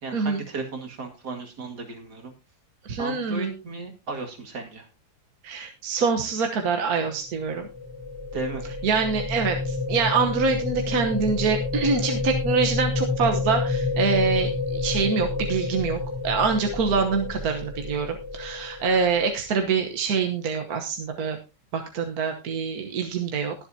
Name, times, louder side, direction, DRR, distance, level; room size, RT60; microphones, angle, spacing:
voice 1, 0.0-2.3 3.0-4.9 8.3-8.6, right 3 dB, 80° right, 2 dB, 2.8 m, -35 dB
voice 2, 2.8-3.5 5.4-7.7 8.8-21.4 21.7-23.5, right 5 dB, 65° right, 4 dB, 1.6 m, -25 dB
sound 1, 7.3-19.5, left 3 dB, 10° left, 3.8 m, -29 dB
21.5 x 7.4 x 2.8 m, 0.27 s
omnidirectional pair, 1.7 m